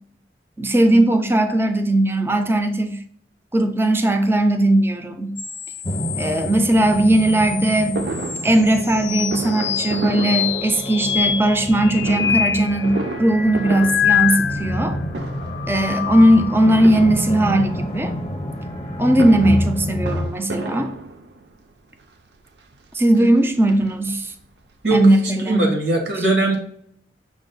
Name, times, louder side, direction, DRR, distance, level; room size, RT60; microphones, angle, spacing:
voice 1, 0.6-3.0 3.5-5.4 6.2-8.0 8.4-15.0 15.7-18.1 19.0-20.9 22.9-24.3 24.9-25.7, right 1 dB, 15° right, 7 dB, 0.4 m, -18 dB
sound 1, 5.4-14.9 15.4-16.7 18.5-19.7, left 9 dB, 80° left, 0.5 m, -27 dB
sound 2, 5.8-20.3, left 1 dB, 35° left, 0.6 m, -29 dB
Fireworks, 8.0-11.1 11.9-14.8 15.1-15.7 16.7-17.8 18.9-21.6 22.3-22.4 22.7-22.8 23.1-24.4 24.7-24.8 25.0-25.1, right 3 dB, 65° right, 0.5 m, -32 dB
voice 2, 25.4-26.6, right 2 dB, 90° right, 1 dB, 1.2 m, -20 dB
6.0 x 2.1 x 3.9 m, 0.67 s
head